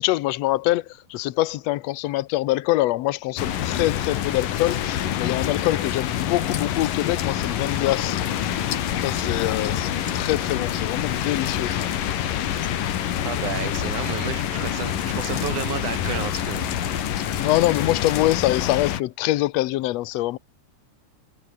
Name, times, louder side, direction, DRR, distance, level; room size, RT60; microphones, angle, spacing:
voice 1, 0.0-8.2 9.0-11.9 17.4-20.4, left 17 dB, 70° left, 1.6 m, -24 dB
sound 1, 3.4-19.0, left 11 dB, 90° left, 3.4 m, -26 dB
sound 2, 7.7-18.0, right 5 dB, 45° right, 3.6 m, -43 dB
voice 2, 13.2-16.7, right 11 dB, 70° right, 2.7 m, -32 dB
omnidirectional pair, 3.7 m